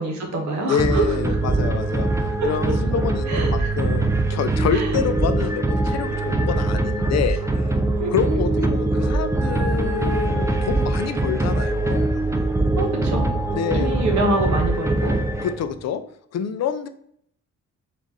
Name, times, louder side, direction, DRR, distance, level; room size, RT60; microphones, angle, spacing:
voice 1, 0.0-1.2 2.4-2.8 3.3-3.7 4.7-4.9 8.0-8.1 12.7-13.3 13.7-15.2, right 2 dB, 75° right, 2 dB, 1.1 m, -25 dB
voice 2, 0.7-2.1 2.4-7.4 8.1-12.1 13.5-14.0 15.4-16.0 16.3-16.9, left 8 dB, 60° left, 10 dB, 0.5 m, -27 dB
sound 1, 0.8-15.8, right 2 dB, 10° right, 0.4 m, -22 dB
4.1 x 2.5 x 3.7 m, 0.68 s
cardioid pair, 110°, 29 cm